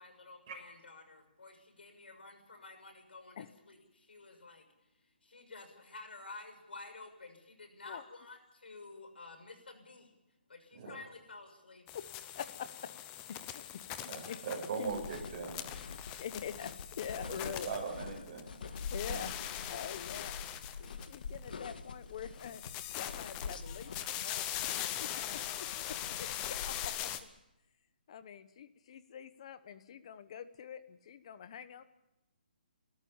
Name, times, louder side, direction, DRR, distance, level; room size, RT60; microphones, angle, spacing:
voice 1, 0.0-4.6 5.2-10.1 10.5-11.9, left 3 dB, 90° left, 6 dB, 6.4 m, -51 dB
sound 1, 11.9-18.4 18.7-21.5 22.4-27.2, left 12 dB, 15° left, 0.8 m, -41 dB
voice 2, 12.3-12.9 13.3-14.4 14.8-14.9 16.2-17.7 18.9-20.4 20.8-22.6 22.9-27.1 28.1-31.8, left 8 dB, 35° left, 13 dB, 1.0 m, -45 dB
voice 3, 14.1-15.6 17.2-18.5 19.1-19.2, right 5 dB, 30° right, -1 dB, 7.2 m, -40 dB
sound 2, 14.9-26.9, left 5 dB, 60° left, 1.9 m, -46 dB
30.0 x 14.0 x 7.2 m, 0.92 s
hypercardioid pair, 170°, 5 cm